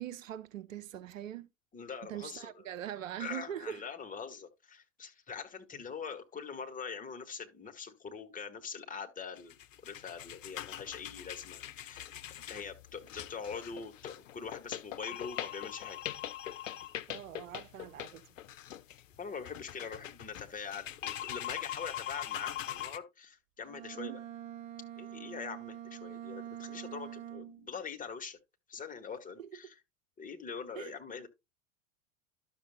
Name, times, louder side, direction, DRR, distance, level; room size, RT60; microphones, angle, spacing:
voice 1, 0.0-1.5 2.1-3.8 17.1-18.3 23.9-24.2 29.4-29.5 30.8-31.3, right 11 dB, 70° right, 0.8 m, -42 dB
voice 2, 1.7-2.5 3.2-9.6 9.8-16.0 19.2-24.2 25.0-28.4 28.7-29.7 30.2-31.3, left 6 dB, 20° left, 1.6 m, -43 dB
sound 1, 9.4-23.0, left 11 dB, 70° left, 0.6 m, -42 dB
Bowed string instrument, 23.6-27.7, right 11 dB, 50° right, 1.4 m, -45 dB
12.0 x 6.7 x 2.2 m
figure-of-eight pair, 80°, 40 cm